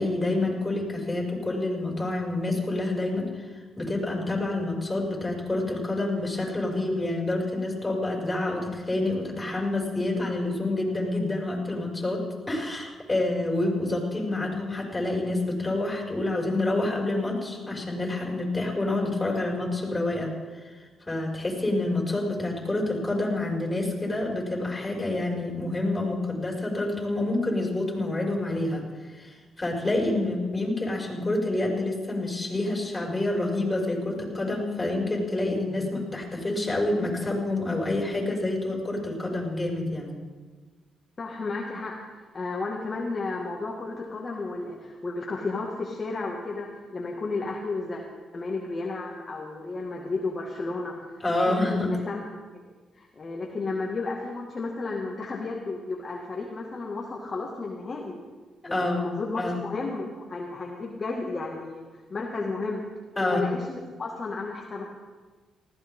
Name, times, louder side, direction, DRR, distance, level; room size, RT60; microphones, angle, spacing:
voice 1, 0.0-20.7 21.1-40.2 51.2-52.0 58.6-59.1 59.4-59.6 63.2-63.4, left 2 dB, 20° left, -1 dB, 6.3 m, -28 dB
voice 2, 41.2-48.0 48.3-51.0 51.3-52.2 53.0-58.2 58.7-62.8 63.2-64.9, left 3 dB, 35° left, -2 dB, 2.2 m, -33 dB
19.5 x 16.0 x 3.9 m, 1.4 s
cardioid pair, 75°, 0 cm